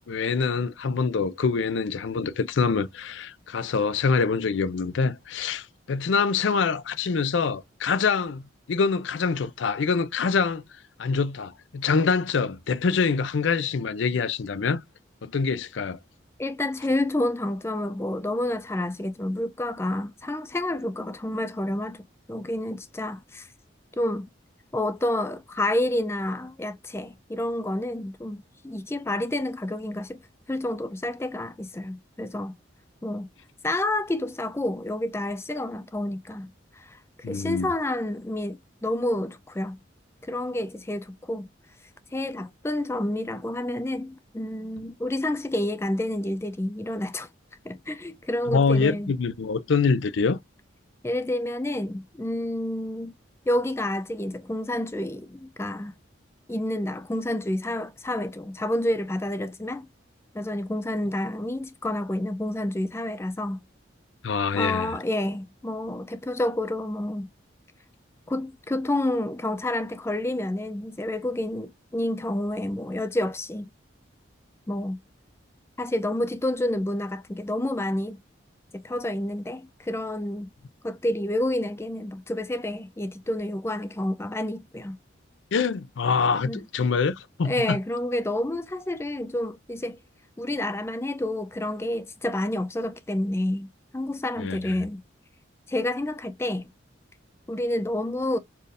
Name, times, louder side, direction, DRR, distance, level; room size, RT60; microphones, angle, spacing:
voice 1, 0.1-10.6 11.0-14.8 15.2-16.0 37.2-37.7 48.5-50.4 64.2-64.9 85.5-87.8 94.4-94.7, left 5 dB, 75° left, 0.5 m, -25 dB
voice 2, 16.4-23.5 24.0-24.3 24.7-30.2 30.5-32.5 33.0-33.3 33.6-36.5 36.7-37.0 37.3-39.8 40.2-41.5 42.1-47.3 47.6-49.1 51.0-53.1 53.5-55.9 56.5-59.9 60.3-63.6 64.5-67.3 68.3-73.7 74.7-75.0 75.8-78.2 78.7-80.5 80.8-85.0 86.4-86.6 87.4-90.0 90.4-95.0 95.7-96.7 97.5-98.4, left 1 dB, 15° left, 0.4 m, -29 dB
4.4 x 3.4 x 2.4 m
head